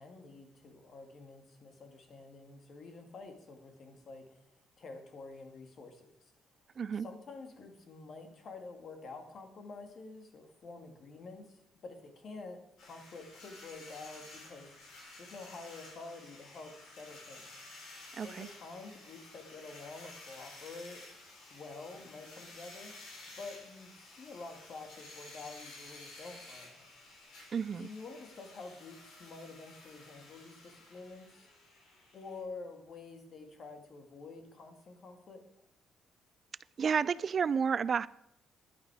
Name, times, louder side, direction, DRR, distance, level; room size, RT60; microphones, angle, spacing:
voice 1, 0.0-4.4 4.8-6.3 6.9-17.5 18.2-21.1 21.5-22.9 23.4-26.9 27.8-31.5 32.1-35.5, left 3 dB, 50° left, 5 dB, 2.2 m, -48 dB
voice 2, 6.8-7.1 18.2-18.5 27.5-27.9 36.8-38.1, right 6 dB, 40° right, 19 dB, 0.4 m, -31 dB
sound 1, 12.8-32.4, left 2 dB, 75° left, 5.3 m, -53 dB
11.5 x 10.5 x 4.8 m, 0.79 s
cardioid pair, 125°, 0 cm